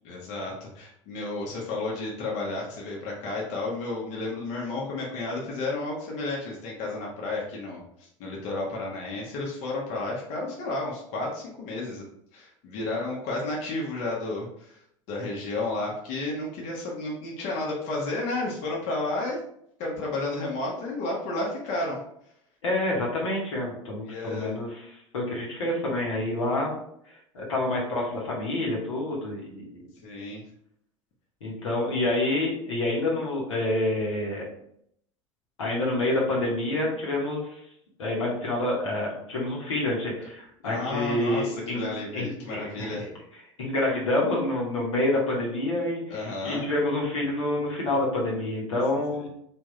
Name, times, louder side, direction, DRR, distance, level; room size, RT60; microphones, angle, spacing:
voice 1, 0.0-7.8 8.2-12.0 12.3-14.8 15.1-19.4 19.8-22.0 24.0-24.5 30.0-30.4 40.6-43.1 46.1-46.7 49.1-49.3, left 2 dB, 45° left, -3 dB, 1.0 m, -32 dB
voice 2, 22.6-26.7 27.3-29.8 31.4-34.5 35.6-37.6 38.0-41.8 42.1-42.9 43.6-49.3, left 1 dB, 70° left, -3 dB, 1.1 m, -28 dB
3.5 x 2.6 x 3.1 m, 0.71 s
figure-of-eight pair, 75°, 16 cm